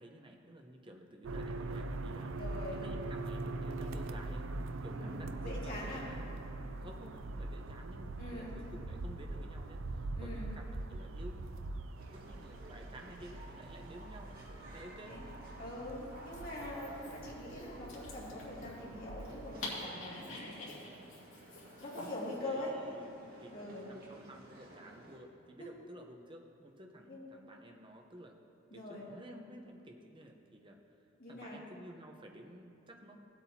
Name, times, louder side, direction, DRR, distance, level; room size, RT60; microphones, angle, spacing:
voice 1, 0.0-2.3 2.7-4.5 4.8-11.8 12.1-14.3 14.7-15.2 20.2-20.4 22.4-28.4 28.7-30.8 31.3-33.2, right 1 dB, 25° right, 3 dB, 0.8 m, -53 dB
sound 1, 1.2-19.7, right 2 dB, 75° right, 0.5 m, -42 dB
voice 2, 2.4-2.8 4.9-6.0 8.2-8.6 10.1-10.5 15.1-15.3 15.6-20.8 21.8-22.7 23.5-23.9 25.6-25.7 27.1-27.2 28.7-29.1 31.2-31.6, left 1 dB, 45° left, -6 dB, 2.4 m, -43 dB
sound 2, 12.0-25.2, right 1 dB, 50° right, 1.7 m, -54 dB
Dog, 16.2-22.4, left 2 dB, 85° left, 2.4 m, -48 dB
17.0 x 8.2 x 2.8 m, 2.8 s
head